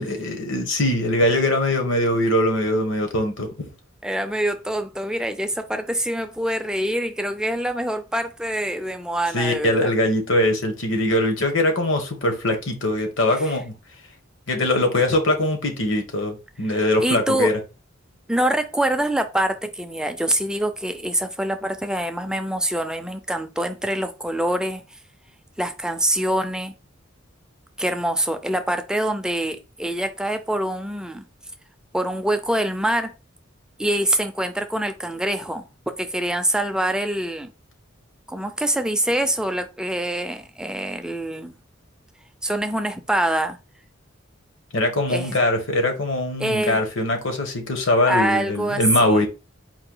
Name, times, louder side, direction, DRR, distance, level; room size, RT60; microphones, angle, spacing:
voice 1, 0.0-3.5 9.3-13.7 14.5-17.6 44.7-49.3, left 1 dB, 70° left, 1.3 m, -22 dB
voice 2, 4.0-9.9 16.7-17.5 18.3-24.8 25.6-26.7 27.8-31.2 31.9-33.1 33.8-37.5 38.3-41.5 42.4-43.6 45.1-45.4 46.4-46.8 48.1-49.3, right 1 dB, 5° right, 0.4 m, -25 dB
4.7 x 2.7 x 3.8 m
head